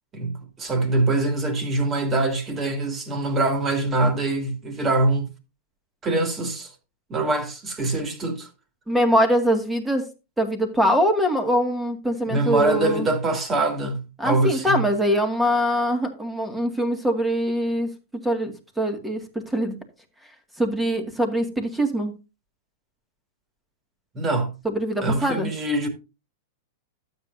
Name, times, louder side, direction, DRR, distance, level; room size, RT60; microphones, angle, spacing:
voice 1, 0.1-5.3 6.0-6.7 7.1-8.5 12.3-14.8 24.1-24.5 25.0-25.9, right 2 dB, 25° right, 2.6 m, -24 dB
voice 2, 8.9-10.1 10.4-13.1 14.2-17.9 18.2-19.8 20.6-22.1 24.6-25.5, equal, 5° right, 2.1 m, -23 dB
12.5 x 8.0 x 2.7 m
hypercardioid pair, 105°, 0 cm